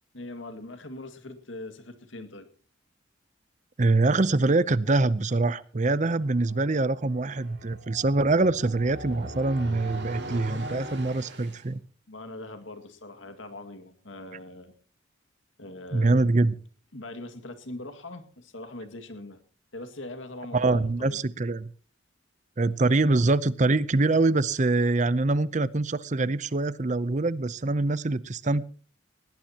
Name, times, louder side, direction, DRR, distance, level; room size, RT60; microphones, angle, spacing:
voice 1, 0.1-2.5 12.1-14.7 15.6-16.6 16.9-19.4 19.7-21.2 22.6-22.9, left 2 dB, 85° left, 9 dB, 2.1 m, -41 dB
voice 2, 3.8-11.8 15.9-16.5 20.5-21.7 22.6-28.6, right 2 dB, 40° right, 18 dB, 0.6 m, -24 dB
sound 1, 6.2-11.7, right 1 dB, 60° right, 4.8 m, -40 dB
20.5 x 18.0 x 2.9 m, 0.41 s
head